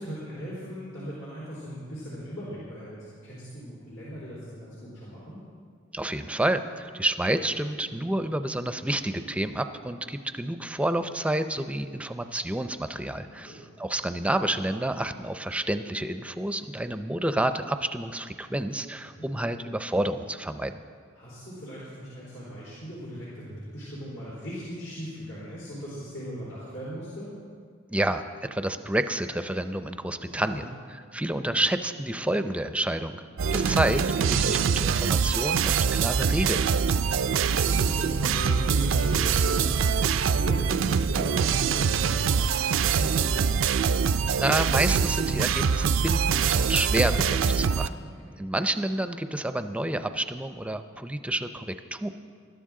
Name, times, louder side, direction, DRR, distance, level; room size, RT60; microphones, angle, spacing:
voice 1, 0.0-5.4 13.1-13.6 19.1-19.3 21.1-27.3 30.1-30.7 33.3-33.7 37.2-43.6 47.6-48.4, equal, 85° left, -8 dB, 3.9 m, -39 dB
voice 2, 5.9-20.7 27.9-33.2 33.5-36.9 44.3-47.9 48.4-52.1, right 1 dB, 5° right, 9 dB, 0.5 m, -29 dB
sound 1, 33.4-47.9, right 6 dB, 70° right, 0.4 m, -24 dB
21.0 x 12.5 x 3.7 m, 2.1 s
head